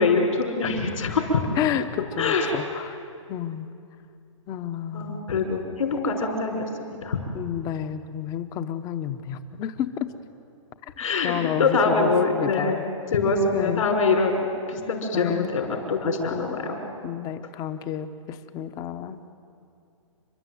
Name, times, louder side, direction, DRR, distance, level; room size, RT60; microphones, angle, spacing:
voice 1, 0.0-1.4 2.2-2.5 4.9-7.2 11.0-11.3 11.6-12.8 13.1-16.8, left 4 dB, 75° left, 2 dB, 5.7 m, -24 dB
voice 2, 1.6-3.0 3.3-3.7 4.5-5.3 7.3-10.1 11.2-12.8 13.5-13.9 15.1-15.5 16.3-16.6 17.0-19.2, left 10 dB, 20° left, 11 dB, 0.9 m, -30 dB
29.5 x 12.5 x 9.4 m, 2.5 s
hypercardioid pair, 150°, 17 cm